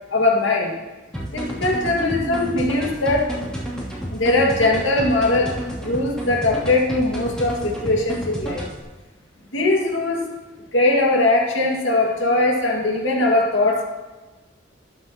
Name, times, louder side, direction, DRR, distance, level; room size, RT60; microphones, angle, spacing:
voice 1, 0.1-0.7 1.3-3.3 4.1-8.6 9.5-10.3 10.7-13.8, left 2 dB, 70° left, 0 dB, 2.1 m, -20 dB
sound 1, 1.1-8.8, equal, 5° left, 2.9 m, -30 dB
20.0 x 7.9 x 3.0 m, 1.2 s
head